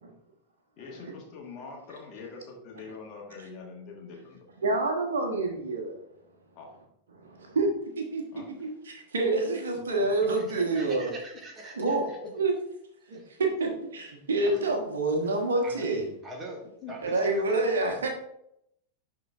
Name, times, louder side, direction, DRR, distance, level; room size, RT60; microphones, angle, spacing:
voice 1, 0.8-4.4 6.5-6.7 8.3-8.7 10.4-10.5 12.2-12.3 16.8-16.9, left 4 dB, 40° left, -1 dB, 1.7 m, -44 dB
voice 2, 4.6-5.9 7.1-11.1 11.8-12.5 13.1-16.1 17.0-18.1, right 2 dB, 65° right, 2 dB, 1.2 m, -28 dB
voice 3, 10.4-12.2 13.1-13.2 14.5-14.6 15.6-15.8 16.2-16.6 16.9-17.6, right 2 dB, 20° right, 0 dB, 1.5 m, -44 dB
11.5 x 3.8 x 2.5 m, 0.77 s
figure-of-eight pair, 90°, 0 cm